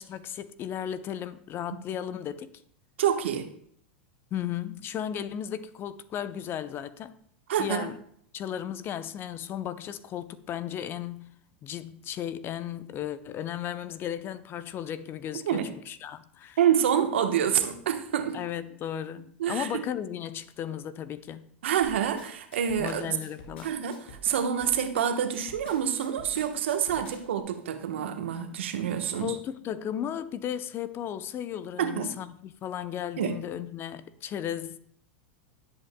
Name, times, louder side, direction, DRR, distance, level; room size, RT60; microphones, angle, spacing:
voice 1, 0.0-2.5 4.3-7.2 7.6-8.0 8.3-11.3 11.6-16.6 18.3-21.5 22.8-23.7 29.1-34.8, left 10 dB, 35° left, 0.6 m, -35 dB
voice 2, 3.0-3.5 7.5-7.9 15.5-15.7 16.6-18.4 19.4-19.8 21.6-23.2 23.6-29.3 31.8-32.1 33.2-33.4, right 9 dB, 75° right, 1.1 m, -27 dB
sound 1, 21.8-27.4, left 2 dB, 80° left, 3.0 m, -48 dB
17.5 x 7.9 x 2.2 m
hypercardioid pair, 100°, 6 cm